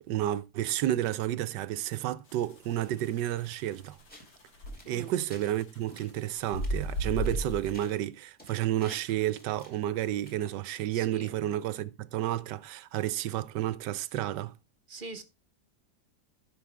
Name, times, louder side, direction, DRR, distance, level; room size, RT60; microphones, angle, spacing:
voice 1, 0.1-4.0 4.9-14.5, right 13 dB, 90° right, 1.3 m, -31 dB
sound 1, 2.3-7.9, equal, 80° left, 2.5 m, -35 dB
sound 2, 4.1-4.4 4.7-5.5 5.9-6.1 6.5-6.7 7.2-7.4 7.7-8.0 8.4-10.6, equal, 5° left, 2.7 m, -52 dB
voice 2, 10.9-11.3 14.9-15.2, right 4 dB, 35° right, 1.1 m, -42 dB
13.5 x 5.9 x 3.4 m
omnidirectional pair, 1.8 m